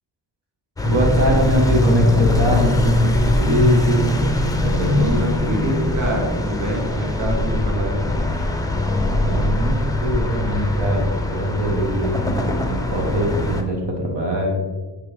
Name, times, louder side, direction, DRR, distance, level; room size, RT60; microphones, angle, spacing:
sound 1, 0.8-13.6, left 2 dB, 10° left, 0.5 m, -21 dB
voice 1, 0.8-5.2 9.2-14.6, right 1 dB, 65° right, 0 dB, 1.4 m, -22 dB
voice 2, 4.8-8.3, right 1 dB, 40° right, -1 dB, 1.2 m, -26 dB
9.7 x 3.4 x 3.4 m, 1.3 s
wide cardioid pair, 130°, 44 cm